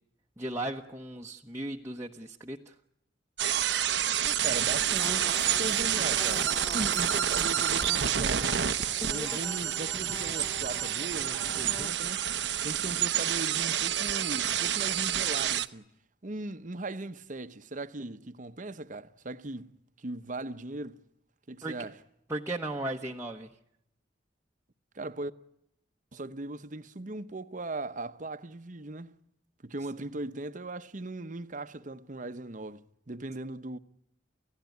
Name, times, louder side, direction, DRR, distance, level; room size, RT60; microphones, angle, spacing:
voice 1, 0.4-2.7 21.6-21.9 22.3-23.5, right 1 dB, 15° right, 1.0 m, -36 dB
sound 1, 3.4-15.7, right 10 dB, 80° right, 0.8 m, -28 dB
voice 2, 4.2-5.3 5.6-8.6 9.1-12.3 12.6-15.9 16.2-21.0 21.5-22.0 24.9-25.3 26.1-29.1 29.6-33.8, right 2 dB, 45° right, 0.9 m, -39 dB
sound 2, 4.5-11.9, left 2 dB, 20° left, 0.9 m, -43 dB
30.0 x 16.5 x 9.3 m
head